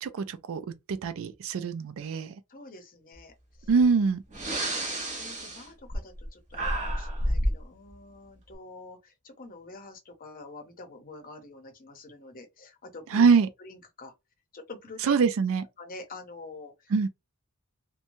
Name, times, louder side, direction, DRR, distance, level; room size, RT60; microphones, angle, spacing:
voice 1, 0.0-2.3 3.7-4.2 13.1-13.5 15.0-15.7 16.9-17.1, right 5 dB, 65° right, 0.4 m, -24 dB
voice 2, 2.5-3.3 3.6-3.7 4.4-4.5 5.2-13.2 13.6-14.1 14.5-15.2 15.8-16.9, left 2 dB, 40° left, 0.7 m, -46 dB
Breathing, 3.7-3.8 4.3-6.3 6.5-7.6, right 1 dB, 35° right, 0.9 m, -30 dB
2.9 x 2.2 x 2.6 m
head